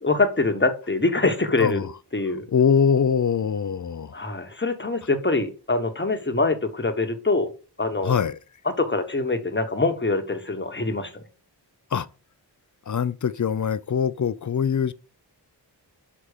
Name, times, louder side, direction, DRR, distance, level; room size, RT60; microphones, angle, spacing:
voice 1, 0.0-1.8 2.1-2.4 4.1-7.5 7.8-8.1 8.6-11.2, left 3 dB, 25° left, 1.2 m, -24 dB
voice 2, 1.6-1.9 2.5-4.1 8.0-8.4 11.9-12.1 12.9-14.9, left 7 dB, 45° left, 0.5 m, -23 dB
5.8 x 4.9 x 6.6 m
wide cardioid pair, 95°, 42 cm